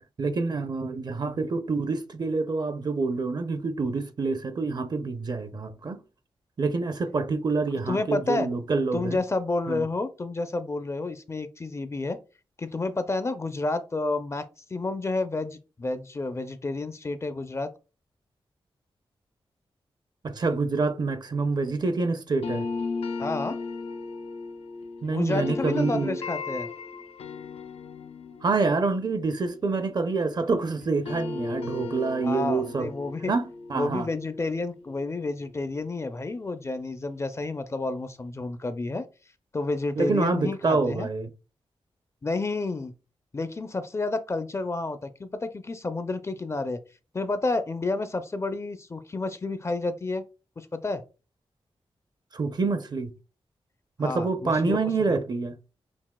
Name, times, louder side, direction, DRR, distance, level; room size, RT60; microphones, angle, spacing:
voice 1, 0.2-6.0 6.6-9.2 9.7-9.8 20.2-22.7 25.0-26.2 28.4-32.9 33.3-33.4 33.7-34.1 40.0-41.3 52.3-53.1 54.0-55.6, right 3 dB, 45° right, 0.5 m, -27 dB
voice 2, 7.9-8.5 8.9-12.2 12.6-17.7 23.2-23.6 25.1-26.7 32.2-33.3 33.7-39.0 39.5-41.1 42.2-42.9 43.3-46.8 47.1-50.2 50.6-51.0 54.0-54.8 55.1-55.2, left 3 dB, 30° left, 0.4 m, -30 dB
sound 1, 22.4-30.5 30.8-35.8, left 4 dB, 85° left, 0.5 m, -36 dB
5.9 x 2.3 x 2.2 m
wide cardioid pair, 90°, 10 cm